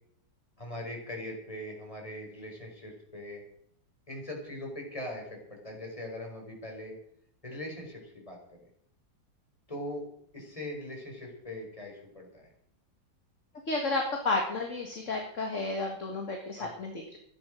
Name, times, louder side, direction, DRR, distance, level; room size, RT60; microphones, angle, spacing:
voice 1, 0.6-3.4 4.1-7.0 7.4-8.4 9.7-10.1 10.3-12.5 16.6-16.8, left 1 dB, 15° left, 0 dB, 4.7 m, -41 dB
voice 2, 13.7-17.2, left 2 dB, 40° left, 2 dB, 2.2 m, -32 dB
14.5 x 10.5 x 6.4 m, 0.68 s
omnidirectional pair, 2.0 m